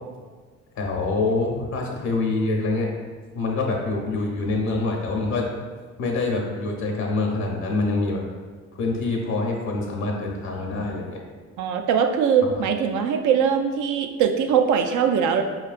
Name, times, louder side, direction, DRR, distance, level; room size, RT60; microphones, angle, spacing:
voice 1, 0.8-2.9 3.3-5.5 6.0-8.2 8.8-11.2, left 3 dB, 70° left, 0 dB, 0.7 m, -25 dB
voice 2, 11.6-15.4, right 7 dB, 80° right, 5 dB, 0.5 m, -21 dB
4.6 x 3.2 x 2.4 m, 1.5 s
cardioid pair, 90°, 30 cm